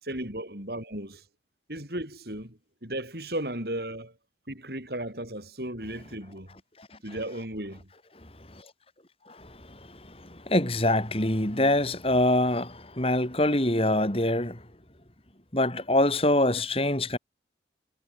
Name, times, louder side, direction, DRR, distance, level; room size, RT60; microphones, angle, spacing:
voice 1, 0.0-1.2 1.7-4.1 4.5-6.5 7.0-7.9, right 1 dB, 55° right, 7.6 m, -35 dB
voice 2, 9.3-9.8 10.2-14.6 15.5-17.2, left 1 dB, 30° left, 3.7 m, -25 dB
head